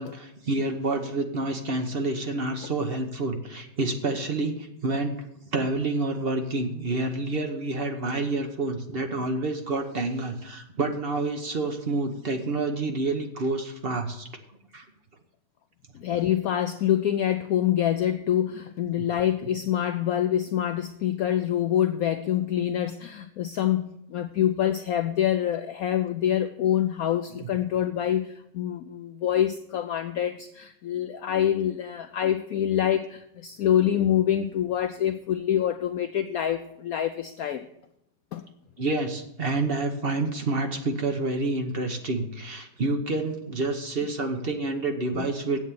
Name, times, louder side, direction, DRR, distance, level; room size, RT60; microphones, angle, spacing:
voice 1, 0.0-5.1 5.5-14.3 14.7-14.8 19.0-19.1 27.4-27.5 38.8-45.6, right 2 dB, 45° right, 5 dB, 0.8 m, -28 dB
voice 2, 15.9-37.7 38.3-38.5 45.1-45.3, left 10 dB, 80° left, 9 dB, 0.8 m, -26 dB
8.2 x 7.8 x 7.5 m, 0.81 s
omnidirectional pair, 2.1 m